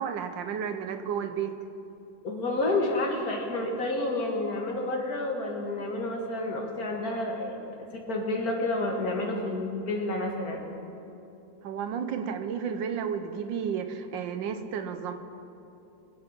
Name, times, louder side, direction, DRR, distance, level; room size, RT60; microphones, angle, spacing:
voice 1, 0.0-1.5 11.6-15.1, right 7 dB, 85° right, 8 dB, 1.6 m, -32 dB
voice 2, 2.2-7.6 8.1-10.7, left 2 dB, 55° left, 0 dB, 2.2 m, -29 dB
23.5 x 7.9 x 5.4 m, 2.8 s
omnidirectional pair, 2.0 m